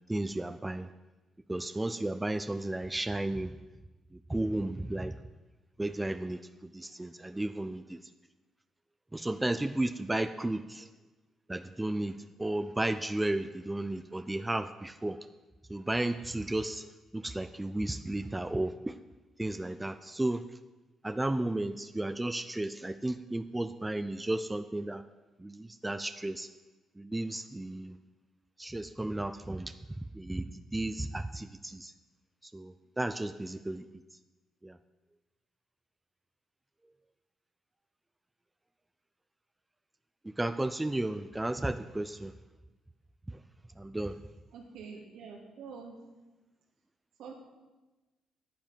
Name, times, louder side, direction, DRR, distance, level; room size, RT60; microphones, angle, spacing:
voice 1, 0.1-0.9 1.5-3.5 4.3-5.2 5.8-8.0 9.1-10.9 11.5-15.2 15.7-19.0 19.4-20.4 21.0-25.0 25.4-26.5 27.0-28.0 28.6-29.7 30.1-31.9 32.4-33.8 34.6-34.8 40.2-42.3 43.8-44.2, right 1 dB, 10° right, 11 dB, 0.5 m, -33 dB
voice 2, 44.5-46.0 47.2-47.3, right 5 dB, 80° right, 1 dB, 2.5 m, -46 dB
10.0 x 8.8 x 7.3 m, 1.1 s
cardioid pair, 90°, 0 cm